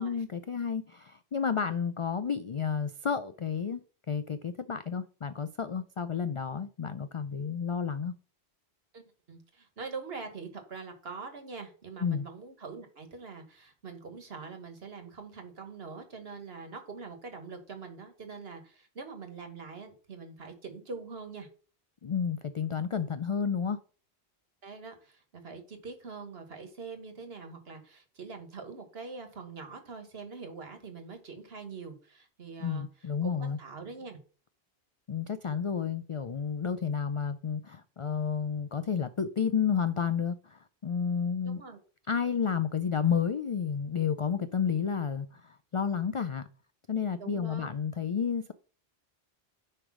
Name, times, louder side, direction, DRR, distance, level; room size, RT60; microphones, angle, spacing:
voice 1, 0.0-8.1 12.0-12.2 22.0-23.8 32.6-33.6 35.1-41.6 42.1-46.5 46.9-48.5, left 6 dB, 55° left, 0.3 m, -31 dB
voice 2, 8.9-21.5 24.6-32.9 33.2-34.2 41.4-41.8 47.2-47.7, right 4 dB, 70° right, 1.7 m, -44 dB
9.8 x 3.4 x 6.1 m
omnidirectional pair, 1.1 m